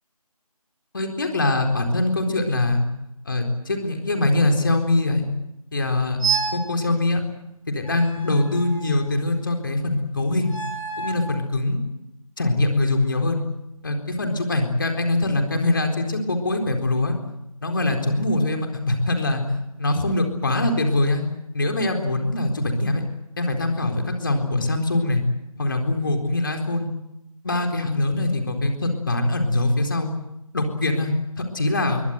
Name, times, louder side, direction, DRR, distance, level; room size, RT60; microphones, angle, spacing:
voice 1, 0.9-2.8 3.3-5.2 5.7-6.2 6.5-7.2 7.7-10.6 11.0-11.8 12.4-13.4 13.8-17.1 17.6-21.2 21.5-23.0 23.4-25.2 25.6-26.9 27.4-30.1 30.5-32.0, left 2 dB, 35° left, 4 dB, 4.0 m, -23 dB
sound 1, 6.2-6.7 7.9-9.1 10.4-11.3, right 6 dB, 55° left, 4.1 m, -29 dB
27.0 x 22.5 x 8.1 m, 0.86 s
figure-of-eight pair, 160°, 19 cm